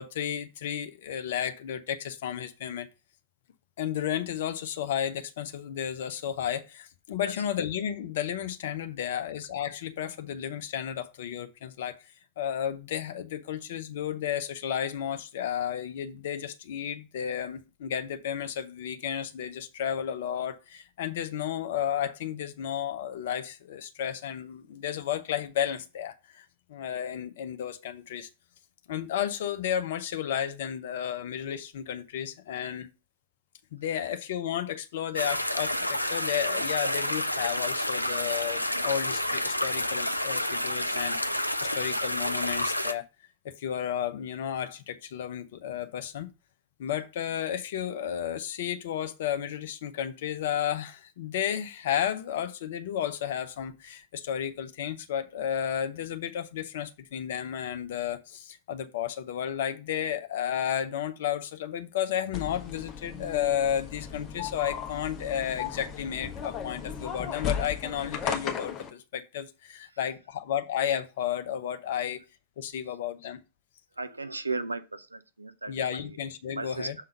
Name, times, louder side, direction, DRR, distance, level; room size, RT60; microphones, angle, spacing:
voice 1, 0.0-2.9 3.8-12.0 12.4-28.3 28.9-32.9 33.7-43.0 43.4-46.3 46.8-72.2 72.6-73.4 75.7-76.9, left 9 dB, 55° left, 0.7 m, -32 dB
sound 1, 35.1-42.9, left 1 dB, 90° left, 0.4 m, -29 dB
sound 2, 62.3-68.9, left 7 dB, 30° left, 1.2 m, -36 dB
voice 2, 73.9-76.2 76.5-76.9, right 3 dB, 80° right, 0.6 m, -36 dB
6.5 x 3.8 x 5.3 m
figure-of-eight pair, 90°, 0 cm